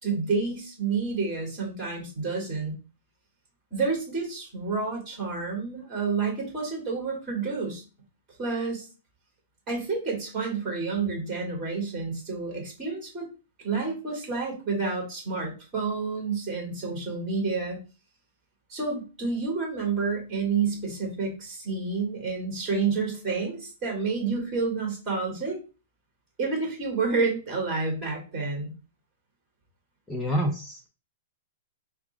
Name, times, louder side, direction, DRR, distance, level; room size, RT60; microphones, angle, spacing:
voice 1, 0.0-2.7 3.7-7.8 8.4-8.8 9.7-13.3 13.6-17.8 18.7-25.6 26.4-28.7, right 4 dB, 15° right, 0 dB, 2.8 m, -29 dB
voice 2, 30.1-30.9, equal, 10° left, 2 dB, 0.5 m, -28 dB
4.6 x 2.4 x 4.8 m, 0.32 s
hypercardioid pair, 165°, 0 cm